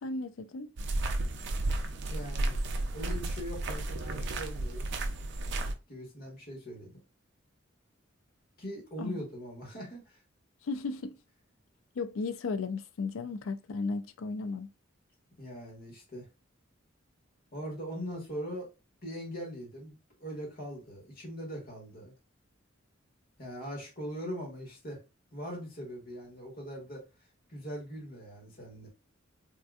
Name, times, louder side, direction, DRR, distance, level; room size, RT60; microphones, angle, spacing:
voice 1, 0.0-0.7 9.0-9.2 10.6-11.2 12.0-14.7, left 3 dB, 80° left, 0.4 m, -35 dB
sound 1, 0.8-5.7, right 2 dB, 60° right, 0.5 m, -33 dB
voice 2, 2.1-2.6 2.9-4.9 5.9-7.0 8.6-10.2 15.4-16.3 17.5-18.7 19.0-22.1 23.4-25.0 25.3-27.1 27.5-28.9, equal, 50° left, 1.5 m, -41 dB
3.7 x 2.5 x 2.4 m
head